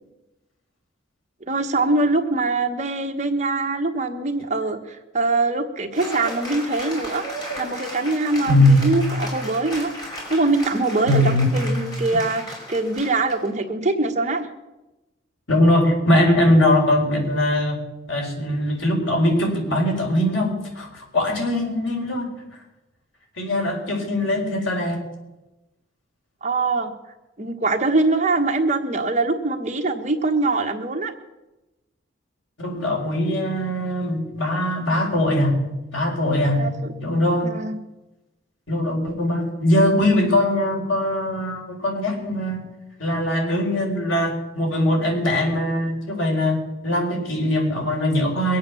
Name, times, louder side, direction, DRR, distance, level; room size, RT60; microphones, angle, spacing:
voice 1, 1.5-7.2 7.6-9.9 10.3-14.5 26.4-26.9 27.4-31.1 36.6-36.9 37.4-37.8, right 3 dB, 35° right, 5 dB, 1.3 m, -23 dB
Cheering / Applause, 5.9-13.5, equal, 20° left, 5.5 m, -35 dB
voice 2, 8.5-8.9 11.1-11.6 15.5-22.3 23.4-25.0 32.6-35.7 35.9-36.7 37.0-37.5 38.7-42.6 43.0-48.6, left 1 dB, 80° left, 2 dB, 4.6 m, -21 dB
22.5 x 8.7 x 7.0 m, 1.0 s
head